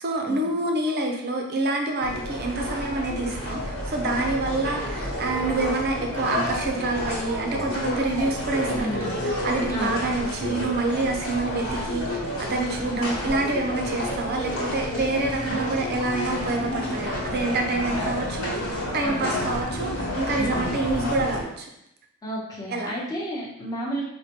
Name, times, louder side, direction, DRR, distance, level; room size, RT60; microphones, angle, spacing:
voice 1, 0.0-18.5 18.9-21.7 22.7-22.9, right 2 dB, 50° right, 2 dB, 0.5 m, -27 dB
sound 1, 2.0-21.4, left 1 dB, 70° left, 1.2 m, -30 dB
voice 2, 8.7-9.1 9.7-10.0 15.4-15.6 19.0-19.4 20.4-20.7 22.2-24.0, equal, 20° left, -6 dB, 0.9 m, -32 dB
4.2 x 2.2 x 2.9 m, 0.77 s
head